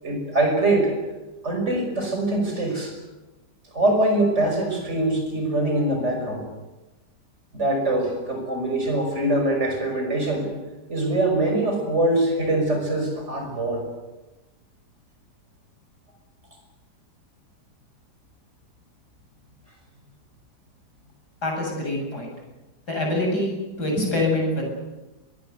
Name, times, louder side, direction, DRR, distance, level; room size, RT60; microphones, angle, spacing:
voice 1, 0.0-0.9 1.4-2.9 3.7-6.4 7.5-10.5 10.9-13.8, right 1 dB, 40° right, 3 dB, 6.3 m, -23 dB
voice 2, 21.4-22.3 22.9-24.7, left 1 dB, 70° left, 1 dB, 8.3 m, -25 dB
23.0 x 20.5 x 8.1 m, 1.1 s
omnidirectional pair, 1.8 m